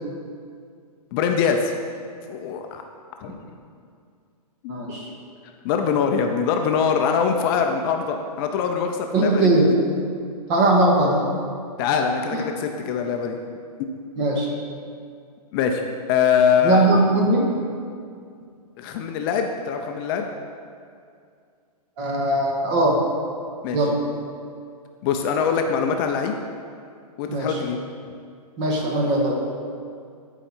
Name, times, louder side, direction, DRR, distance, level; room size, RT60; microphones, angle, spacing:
voice 1, 1.1-1.7 2.3-2.8 3.2-3.3 4.6-4.7 5.6-9.5 11.8-13.4 13.8-13.9 15.5-15.8 16.1-16.9 18.8-20.3 23.6-23.8 25.0-26.4 27.2-27.8, left 7 dB, 35° left, 4 dB, 0.6 m, -23 dB
voice 2, 4.7-5.1 9.1-9.7 10.5-11.2 12.3-12.4 14.2-14.5 16.6-17.5 22.0-23.0 23.7-24.0 27.3-27.6 28.6-29.3, right 2 dB, 35° right, -1 dB, 1.9 m, -20 dB
13.0 x 4.9 x 4.4 m, 2.3 s
hypercardioid pair, 125°, 20 cm